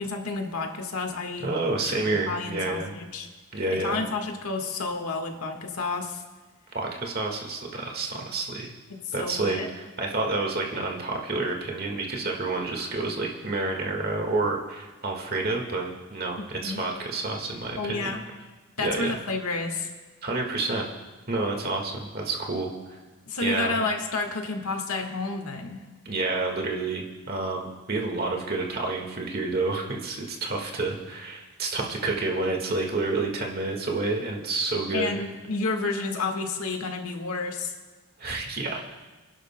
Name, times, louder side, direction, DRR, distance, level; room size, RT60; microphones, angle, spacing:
voice 1, 0.0-1.5 2.3-3.3 3.7-6.2 8.9-9.7 16.4-16.8 17.8-18.2 18.8-19.9 23.3-25.8 34.9-37.7, left 3 dB, 85° left, 4 dB, 1.5 m, -30 dB
voice 2, 1.4-3.0 3.5-4.0 6.7-8.7 9.1-18.1 18.8-19.1 20.2-20.9 21.3-22.7 23.4-23.8 26.1-35.2 38.2-38.8, right 3 dB, 45° right, 1 dB, 1.7 m, -29 dB
30.0 x 11.0 x 2.2 m, 1.3 s
head